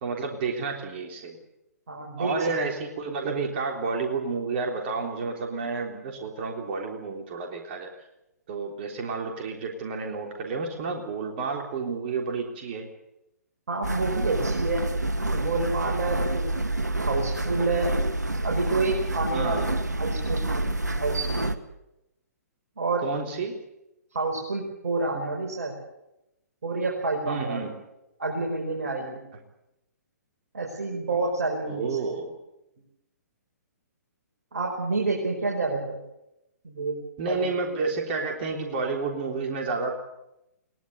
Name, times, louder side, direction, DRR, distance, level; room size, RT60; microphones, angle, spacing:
voice 1, 0.0-1.4 2.2-7.9 8.5-12.9 19.3-19.7 23.0-23.6 27.3-27.7 31.7-32.3 37.2-39.9, right 4 dB, 40° right, 2 dB, 3.6 m, -30 dB
voice 2, 1.9-2.3 13.7-14.8 15.3-16.5 17.1-18.0 18.4-19.6 20.0-20.7 21.0-21.3 22.8-23.1 24.1-25.7 26.6-27.6 28.2-29.2 30.5-32.0 34.5-36.0 36.6-37.0 37.3-37.4, right 3 dB, 60° right, 0 dB, 5.6 m, -28 dB
sound 1, 13.8-21.6, right 2 dB, 80° right, 1.9 m, -28 dB
22.0 x 19.0 x 8.2 m, 0.88 s
figure-of-eight pair, 125°, 9 cm